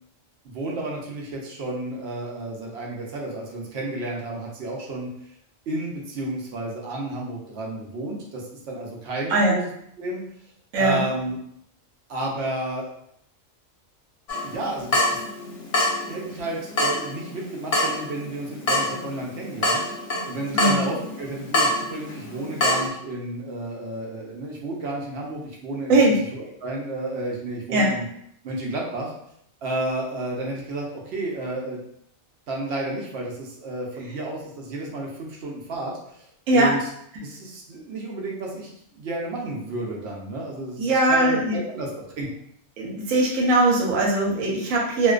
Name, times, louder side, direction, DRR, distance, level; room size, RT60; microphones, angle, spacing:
voice 1, 0.4-5.1 5.7-9.7 10.0-10.2 10.8-11.4 12.1-12.9 14.4-15.0 16.0-26.0 26.3-28.0 28.4-29.1 29.6-31.8 32.5-36.3 36.5-36.9 37.2-42.3, right 2 dB, 65° right, -2 dB, 0.7 m, -32 dB
Water tap faucet / Drip, 14.3-22.9, left 1 dB, 60° left, 0.8 m, -26 dB
voice 2, 20.5-20.8 25.9-26.2 27.7-27.9 36.5-36.7 40.8-41.6 42.8-45.1, right 2 dB, 85° right, -2 dB, 1.0 m, -20 dB
2.4 x 2.2 x 2.3 m, 0.72 s
omnidirectional pair, 1.4 m